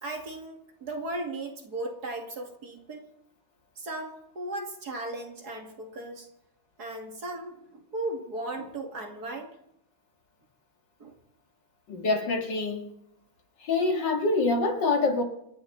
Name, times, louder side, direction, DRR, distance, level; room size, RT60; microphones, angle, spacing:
voice 1, 0.0-3.1 3.8-6.3 6.8-9.6 11.0-11.2, right 2 dB, 50° right, 2 dB, 2.7 m, -36 dB
voice 2, 11.9-12.9 13.6-15.2, left 3 dB, 60° left, 4 dB, 2.5 m, -25 dB
28.0 x 11.5 x 4.1 m, 0.80 s
omnidirectional pair, 2.3 m